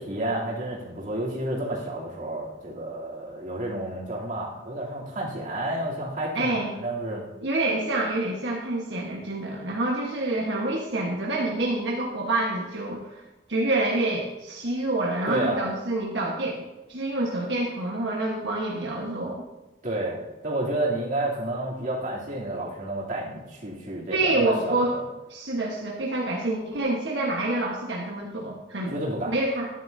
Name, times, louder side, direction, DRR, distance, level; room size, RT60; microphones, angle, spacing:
voice 1, 0.0-7.2 15.3-15.6 19.8-25.0 28.9-29.3, right 1 dB, 45° right, -6 dB, 3.0 m, -30 dB
voice 2, 6.3-6.7 7.4-13.2 13.5-16.6 16.9-19.4 24.1-25.0 25.3-28.9 29.3-29.7, right 2 dB, 80° right, -2 dB, 1.3 m, -27 dB
13.0 x 10.5 x 2.7 m, 1.1 s
head